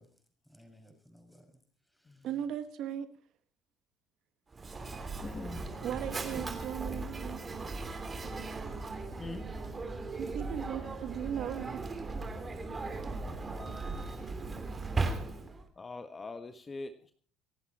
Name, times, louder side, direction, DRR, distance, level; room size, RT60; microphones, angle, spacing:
voice 1, 0.0-2.4, equal, ahead, 6.0 m, -61 dB
voice 2, 2.2-3.1 5.8-7.4 10.2-11.9, right 10 dB, 60° right, 1.5 m, -37 dB
Mechanisms, 4.5-15.7, right 3 dB, 25° right, 3.2 m, -38 dB
voice 3, 5.2-5.8 9.2-9.5 12.6-14.1 15.8-17.1, left 3 dB, 25° left, 1.5 m, -45 dB
26.5 x 11.5 x 4.3 m
supercardioid pair, 100°, 0 cm